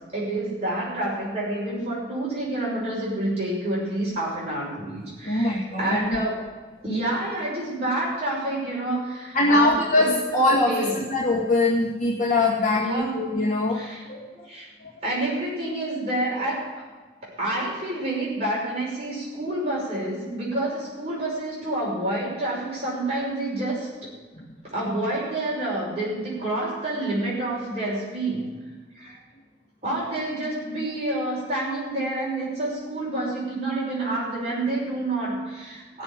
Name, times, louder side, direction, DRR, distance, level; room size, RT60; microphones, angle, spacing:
voice 1, 0.1-6.4 6.8-10.4 10.6-11.0 12.7-13.2 13.7-14.0 14.5-14.7 15.0-16.6 17.4-23.9 24.6-28.4 28.9-29.2 29.8-36.0, right 1 dB, 35° right, -6 dB, 5.9 m, -28 dB
voice 2, 5.2-6.0 9.3-14.5 14.8-14.9 24.4-24.6, left 2 dB, 45° left, -4 dB, 1.9 m, -23 dB
16.5 x 7.1 x 8.9 m, 1.3 s
head